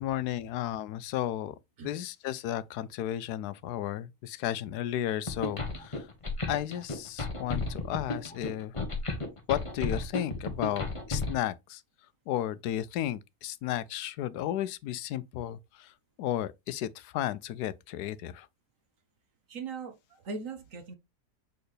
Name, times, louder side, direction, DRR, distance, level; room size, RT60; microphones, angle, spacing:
voice 1, 0.0-1.5 1.8-6.1 6.5-8.7 9.5-11.8 12.3-18.5, left 12 dB, 80° left, 1.1 m, -33 dB
sound 1, 5.3-11.3, left 3 dB, 20° left, 1.2 m, -33 dB
voice 2, 19.5-21.0, right 4 dB, 55° right, 1.6 m, -39 dB
6.7 x 4.4 x 3.2 m
omnidirectional pair, 1.7 m